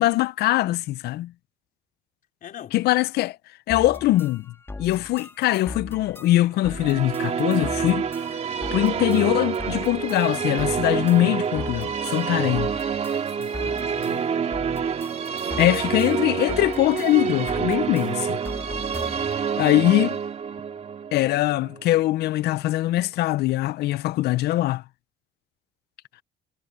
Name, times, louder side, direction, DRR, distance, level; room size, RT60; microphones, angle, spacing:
voice 1, 0.0-1.3 2.7-3.4 3.7-8.1 8.7-12.7 15.6-18.4 19.6-20.2 21.1-24.8, left 16 dB, 70° left, 0.6 m, -22 dB
voice 2, 2.4-2.8 4.8-5.1 13.3-14.6 15.4-15.8 18.2-18.3, left 10 dB, 55° left, 4.1 m, -44 dB
sound 1, 3.7-19.4, left 2 dB, 15° left, 2.0 m, -40 dB
Musical instrument, 6.6-22.1, right 7 dB, 40° right, 2.6 m, -27 dB
cardioid pair, 110°, 17 cm